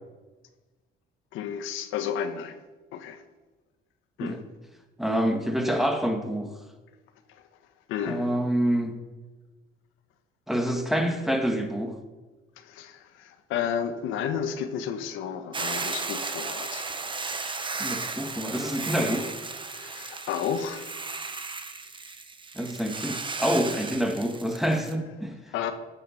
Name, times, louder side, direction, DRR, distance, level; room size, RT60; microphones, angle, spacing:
voice 1, 1.3-2.6 2.9-3.2 4.2-4.4 7.3-7.4 7.9-8.3 12.6-16.9 19.7-20.9 25.5-25.7, left 8 dB, 85° left, 7 dB, 1.3 m, -32 dB
voice 2, 5.0-6.5 8.1-8.9 10.5-12.0 17.8-19.3 22.6-25.5, equal, ahead, 4 dB, 1.9 m, -27 dB
Hiss / Boiling, 15.5-24.9, right 3 dB, 25° right, 1.2 m, -35 dB
15.0 x 8.0 x 5.9 m, 1.2 s
cardioid pair, 90°, 20 cm